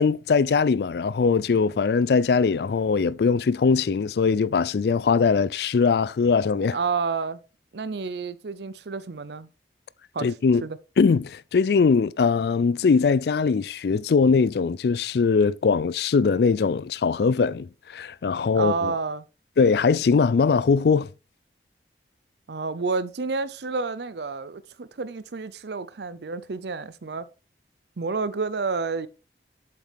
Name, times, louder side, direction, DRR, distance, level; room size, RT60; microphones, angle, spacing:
voice 1, 0.0-6.8 10.2-10.7 11.0-18.9 19.6-21.1, left 5 dB, 70° left, 0.4 m, -21 dB
voice 2, 6.7-7.4 7.7-9.5 10.1-10.3 10.6-10.8 18.5-19.2 22.5-27.3 28.0-29.1, right 4 dB, 75° right, 0.6 m, -29 dB
7.6 x 7.3 x 3.4 m
head